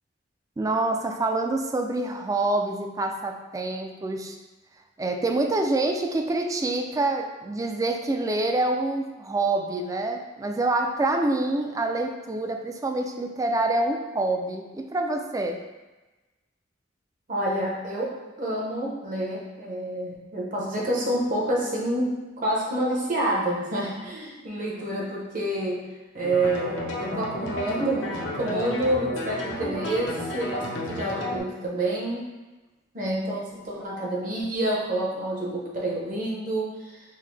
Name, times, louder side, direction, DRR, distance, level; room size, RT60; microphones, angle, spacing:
voice 1, 0.6-4.4 5.0-15.6, right 2 dB, 20° right, 4 dB, 0.3 m, -26 dB
voice 2, 17.3-25.8 26.1-32.2 32.9-37.0, right 1 dB, 45° right, -3 dB, 0.9 m, -28 dB
sound 1, 26.2-31.4, left 1 dB, 90° left, 0.7 m, -32 dB
5.6 x 2.0 x 3.3 m, 1.1 s
head